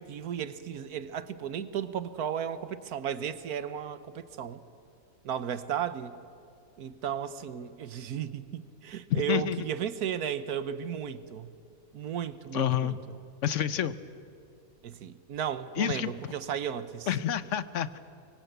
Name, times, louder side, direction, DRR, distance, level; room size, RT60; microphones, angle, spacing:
voice 1, 0.0-4.6 5.2-6.1 6.8-11.5 11.9-13.0 14.8-17.1, right 9 dB, 80° right, 13 dB, 1.5 m, -34 dB
voice 2, 9.1-9.7 12.5-13.0 13.4-14.0 15.8-16.1 17.1-18.0, left 10 dB, 60° left, 14 dB, 1.1 m, -28 dB
24.0 x 24.0 x 8.1 m, 2.4 s
omnidirectional pair, 1.6 m